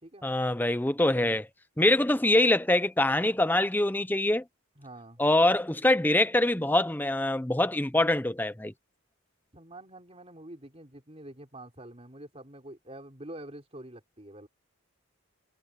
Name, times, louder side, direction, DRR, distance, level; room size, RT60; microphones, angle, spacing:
voice 1, 0.2-1.5 1.8-4.4 5.2-8.7, left 1 dB, 10° left, 0.7 m, -24 dB
voice 2, 4.8-5.2 9.5-14.5, right 1 dB, 25° right, 4.3 m, -46 dB
head